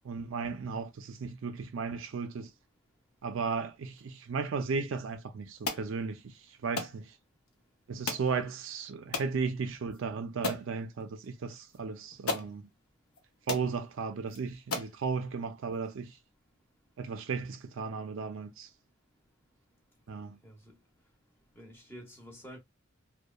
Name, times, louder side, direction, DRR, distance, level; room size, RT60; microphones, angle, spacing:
voice 1, 0.0-2.5 3.2-7.1 7.9-12.7 13.5-16.2 17.0-18.7 20.1-20.4, right 5 dB, 60° right, 0.4 m, -35 dB
sound 1, 5.6-5.9 6.8-7.0 8.1-8.3 9.1-9.3 9.9-10.0 10.4-10.7 11.7-11.8 12.3-12.5 13.1-13.2 13.5-13.7 14.3-14.4 14.7-15.0, left 3 dB, 85° left, 0.6 m, -34 dB
voice 2, 21.6-22.6, equal, 10° left, 0.7 m, -49 dB
2.8 x 2.1 x 2.2 m
head